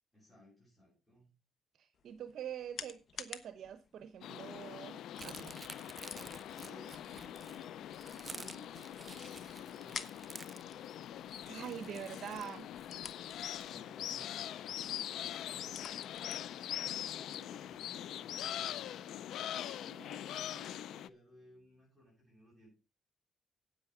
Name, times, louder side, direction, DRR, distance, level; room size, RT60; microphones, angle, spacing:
voice 1, 0.1-1.3 6.6-8.0 8.3-10.1 11.4-12.3 13.5-14.8 17.1-19.1 19.8-22.7, left 1 dB, 10° left, 7.7 m, -60 dB
voice 2, 1.8-5.5 11.5-12.7, right 9 dB, 65° right, 0.8 m, -45 dB
sound 1, 1.9-18.3, left 7 dB, 55° left, 1.0 m, -53 dB
sound 2, 4.2-21.1, left 11 dB, 80° left, 0.5 m, -43 dB
sound 3, 5.1-13.8, right 3 dB, 25° right, 0.5 m, -52 dB
9.6 x 9.1 x 4.9 m
cardioid pair, 90°, 0 cm